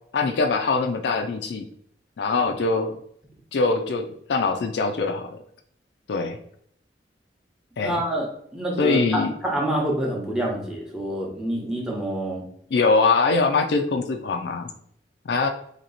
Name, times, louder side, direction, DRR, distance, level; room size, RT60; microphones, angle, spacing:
voice 1, 0.1-1.7 2.2-3.0 3.5-5.4 6.1-6.4 7.8-8.0 8.8-9.3 12.7-14.7 15.3-15.5, left 4 dB, 75° left, 6 dB, 0.4 m, -23 dB
voice 2, 7.8-8.3 8.5-12.4, right 1 dB, 5° right, -1 dB, 0.9 m, -27 dB
2.9 x 2.8 x 4.0 m, 0.66 s
head